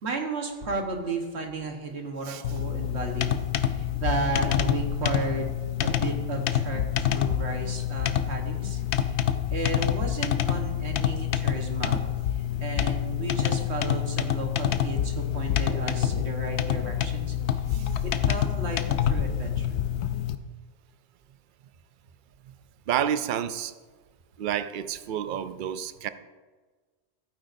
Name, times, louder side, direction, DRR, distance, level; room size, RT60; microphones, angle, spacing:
voice 1, 0.0-3.4 3.6-9.2 9.5-12.0 12.3-17.6 18.0-19.7, right 3 dB, 75° right, 2 dB, 1.6 m, -34 dB
sound 1, 2.4-20.4, left 10 dB, 80° left, 0.9 m, -27 dB
voice 2, 22.9-23.7 24.4-26.1, right 9 dB, 60° right, 12 dB, 0.6 m, -29 dB
15.0 x 9.0 x 2.6 m, 1.4 s
omnidirectional pair, 1.1 m